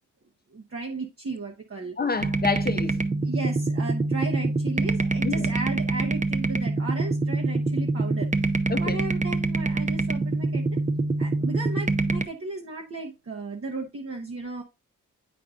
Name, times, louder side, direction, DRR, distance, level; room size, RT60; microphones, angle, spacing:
voice 1, 0.5-2.0 3.2-8.5 8.8-10.8 11.2-14.6, right 3 dB, 45° right, 1.1 m, -35 dB
voice 2, 2.0-3.0 5.2-5.5 8.7-9.0, left 4 dB, 30° left, 0.7 m, -28 dB
sound 1, 2.2-12.2, right 3 dB, 25° right, 0.7 m, -25 dB
8.4 x 5.3 x 2.4 m
wide cardioid pair, 90°, 31 cm